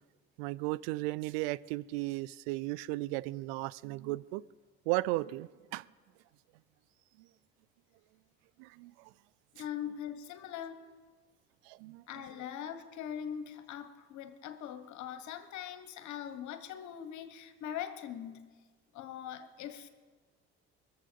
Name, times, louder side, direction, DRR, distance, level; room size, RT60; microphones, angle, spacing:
voice 1, 0.4-4.4 4.9-5.8 8.6-9.1 11.7-12.0, right 19 dB, 85° right, 0.5 m, -35 dB
voice 2, 9.5-10.8 12.1-18.4 18.9-19.9, left 9 dB, 70° left, 1.3 m, -42 dB
22.5 x 7.5 x 6.9 m
hypercardioid pair, 60°, 30 cm